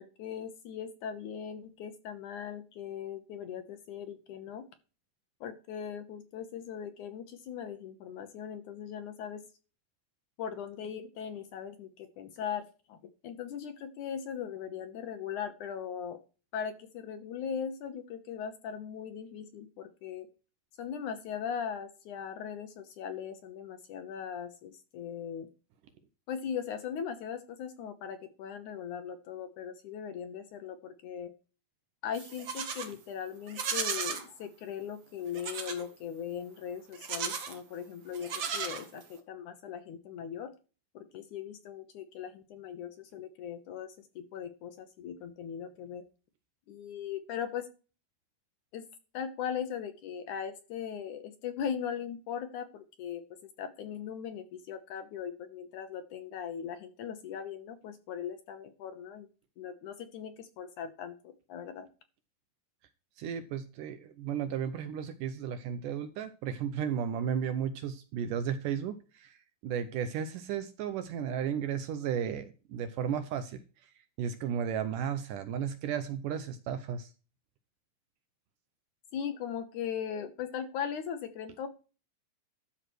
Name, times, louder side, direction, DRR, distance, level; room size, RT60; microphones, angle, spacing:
voice 1, 0.0-4.6 5.4-9.4 10.4-13.0 13.2-16.2 16.5-20.3 20.8-25.5 26.3-31.3 32.0-40.5 41.0-46.0 46.7-47.7 48.7-48.8 49.1-53.2 53.6-59.3 59.6-61.9 79.1-81.7, left 8 dB, 70° left, 2.1 m, -39 dB
Livestock farm animals working animals, 32.1-32.9 33.5-34.3 35.3-35.8 36.9-37.6 38.1-39.2, right 6 dB, 60° right, 1.3 m, -35 dB
voice 2, 63.2-69.4 69.6-73.6 74.2-77.1, right 8 dB, 75° right, 2.0 m, -34 dB
13.0 x 4.8 x 6.2 m
omnidirectional pair, 4.3 m